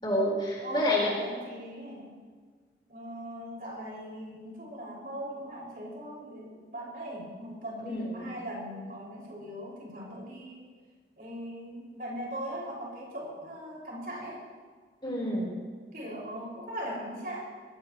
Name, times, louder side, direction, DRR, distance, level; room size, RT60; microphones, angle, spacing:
voice 1, 0.0-1.1 7.8-8.3 15.0-15.5, left 1 dB, 25° left, -3 dB, 4.1 m, -28 dB
voice 2, 0.6-2.1 2.9-10.7 11.2-14.4 15.9-17.4, equal, 55° right, -4 dB, 5.8 m, -40 dB
21.0 x 16.5 x 3.1 m, 1.5 s
head